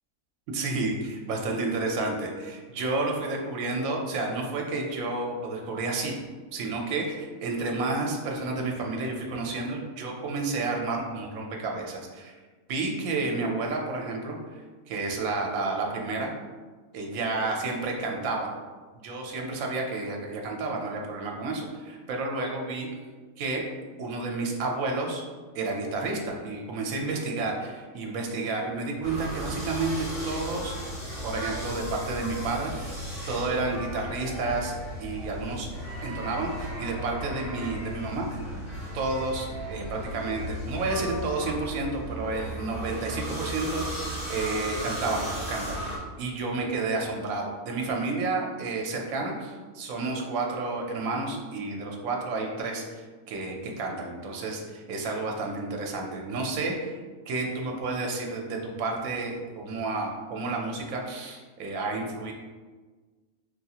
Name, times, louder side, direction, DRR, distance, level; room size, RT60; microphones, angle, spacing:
voice 1, 0.5-6.2 6.5-12.3 12.7-14.6 14.9-16.3 16.9-18.5 18.9-22.9 23.4-23.6 24.0-25.2 25.5-30.7 31.2-34.7 35.0-35.7 36.0-38.4 38.9-57.0 57.3-62.3, right 3 dB, 75° right, 0 dB, 1.0 m, -31 dB
sound 1, 29.0-46.0, equal, 25° left, 1.0 m, -35 dB
4.4 x 2.3 x 2.8 m, 1.4 s
omnidirectional pair, 1.5 m